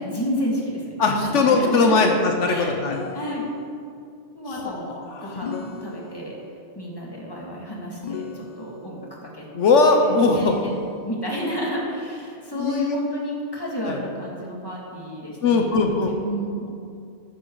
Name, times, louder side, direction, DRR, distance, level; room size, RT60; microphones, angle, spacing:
voice 1, 0.0-2.1 2.5-2.7 3.1-3.4 4.3-4.9 5.2-6.4 6.7-9.5 9.9-16.7, equal, 20° left, -3 dB, 2.3 m, -31 dB
voice 2, 1.0-3.0 4.5-5.3 9.5-10.5 12.6-13.0 13.8-14.0 15.4-16.2, left 3 dB, 80° left, 3 dB, 1.2 m, -20 dB
sound 1, 2.8-3.9 5.4-6.5 8.0-9.0 10.4-11.4, left 6 dB, 50° left, 0.5 m, -36 dB
13.0 x 10.0 x 4.0 m, 2.4 s
omnidirectional pair, 1.2 m